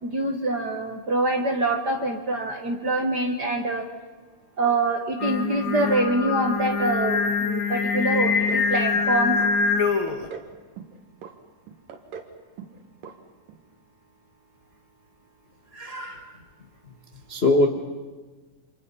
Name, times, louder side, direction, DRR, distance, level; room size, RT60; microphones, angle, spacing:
voice 1, 0.0-3.9 4.6-9.4, right 2 dB, 50° right, 3 dB, 1.2 m, -25 dB
Singing, 5.2-10.3, left 5 dB, 45° left, 2.2 m, -24 dB
sound 1, 8.3-8.7 8.9-9.5 9.8-10.5 10.8-11.3 11.7-12.3 12.6-12.8 13.0-13.2 13.5-13.6, right 7 dB, 75° right, 3.3 m, -40 dB
voice 2, 15.7-16.2 17.3-17.7, left 2 dB, 75° left, 2 dB, 0.5 m, -22 dB
29.0 x 27.0 x 5.6 m, 1.3 s
omnidirectional pair, 3.9 m